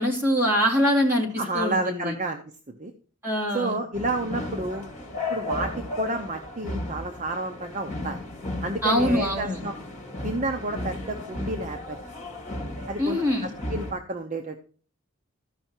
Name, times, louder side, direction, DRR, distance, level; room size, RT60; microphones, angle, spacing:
voice 1, 0.0-1.3 1.5-2.1 3.2-3.8 8.8-9.6 13.0-13.5, equal, 10° right, -2 dB, 2.5 m, -23 dB
voice 2, 1.4-2.9 3.5-4.8 5.3-8.2 8.6-9.7 10.2-12.0 12.9-14.6, right 2 dB, 35° right, 4 dB, 0.7 m, -30 dB
sound 1, 3.9-13.9, left 2 dB, 35° left, 2.3 m, -34 dB
14.0 x 5.6 x 4.4 m, 0.42 s
head